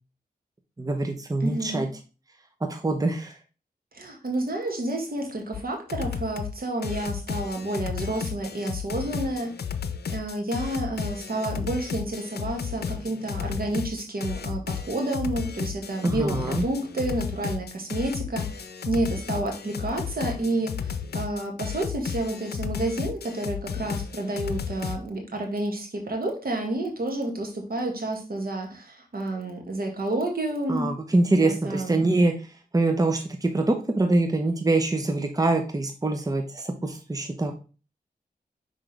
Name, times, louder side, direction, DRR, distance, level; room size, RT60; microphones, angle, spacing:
voice 1, 0.8-1.9 2.7-3.4 16.0-16.6 30.7-37.5, right 2 dB, 20° right, 4 dB, 0.9 m, -24 dB
voice 2, 1.4-1.9 3.9-9.5 10.1-30.9 31.4-32.0, right 2 dB, 65° right, 2 dB, 1.9 m, -30 dB
sound 1, 5.5-5.6 5.9-6.5 6.8-25.0, left 7 dB, 80° left, 0.6 m, -33 dB
6.1 x 5.0 x 3.4 m, 0.34 s
cardioid pair, 65°, 16 cm